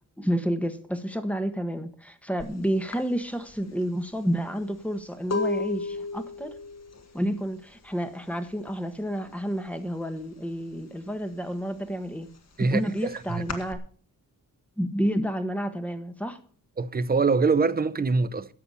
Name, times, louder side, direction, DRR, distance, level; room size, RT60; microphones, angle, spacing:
voice 1, 0.2-6.6 7.1-12.3 12.7-13.8 14.8-16.4, equal, 5° left, 1.5 m, -30 dB
sound 1, 2.4-2.6 2.9-8.6 8.8-9.4 9.6-10.8 11.2-13.7, left 3 dB, 50° left, 1.8 m, -34 dB
voice 2, 12.6-13.4 16.8-18.5, right 4 dB, 25° right, 0.7 m, -24 dB
13.5 x 8.3 x 5.7 m
wide cardioid pair, 140°, 34 cm